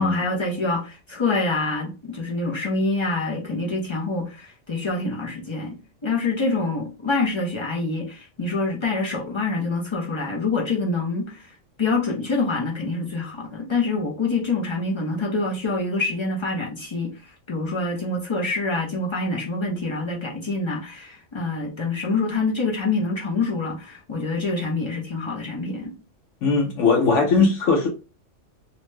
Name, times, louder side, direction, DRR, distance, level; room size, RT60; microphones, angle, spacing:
voice 1, 0.0-5.8 6.0-11.5 11.8-17.1 17.5-25.9, left 3 dB, 50° left, 0.3 m, -26 dB
voice 2, 26.4-27.9, left 4 dB, 75° left, 0.9 m, -19 dB
2.7 x 2.1 x 3.1 m
omnidirectional pair, 1.3 m